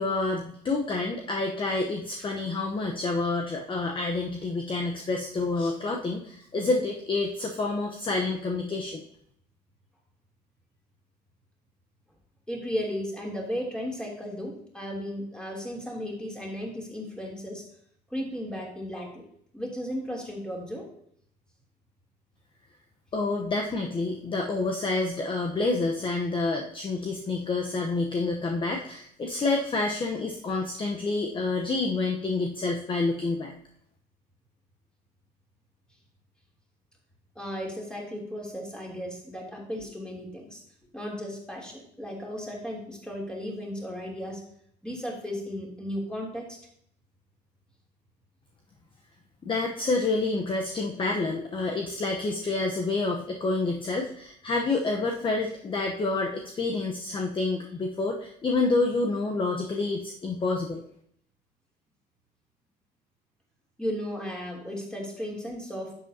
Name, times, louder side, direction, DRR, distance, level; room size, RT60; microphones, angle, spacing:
voice 1, 0.0-9.0 23.1-33.5 49.4-60.8, left 3 dB, 30° left, 2 dB, 1.0 m, -28 dB
voice 2, 12.5-17.6 18.1-19.2 19.5-20.8 37.3-40.6 40.9-44.4 44.8-46.5 63.8-65.9, equal, 5° left, -2 dB, 3.1 m, -35 dB
11.0 x 7.8 x 2.8 m, 0.66 s
cardioid pair, 115°, 18 cm